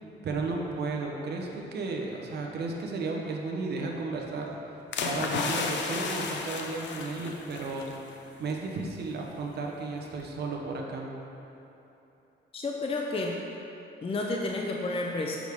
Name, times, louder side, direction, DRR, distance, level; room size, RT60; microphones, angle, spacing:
voice 1, 0.0-4.6 5.0-7.9 8.4-11.1, right 3 dB, 55° right, 0 dB, 0.9 m, -34 dB
sound 1, 4.9-8.0 8.3-8.5, left 4 dB, 65° left, 0.7 m, -32 dB
voice 2, 12.5-13.4 14.0-15.4, left 2 dB, 30° left, 0 dB, 0.6 m, -31 dB
6.3 x 6.2 x 3.6 m, 3.0 s
cardioid pair, 90°, 20 cm